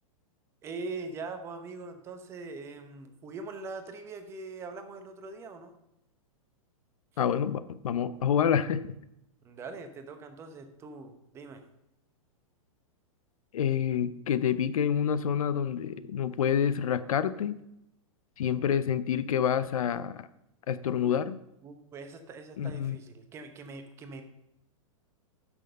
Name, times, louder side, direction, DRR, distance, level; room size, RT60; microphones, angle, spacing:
voice 1, 0.6-5.7 9.4-11.6 21.6-24.2, right 3 dB, 15° right, 7 dB, 0.8 m, -42 dB
voice 2, 7.2-8.9 13.5-17.6 18.4-20.2 20.7-21.4 22.6-23.0, left 8 dB, 80° left, 15 dB, 0.7 m, -28 dB
8.8 x 6.2 x 6.6 m, 0.83 s
hypercardioid pair, 165°, 18 cm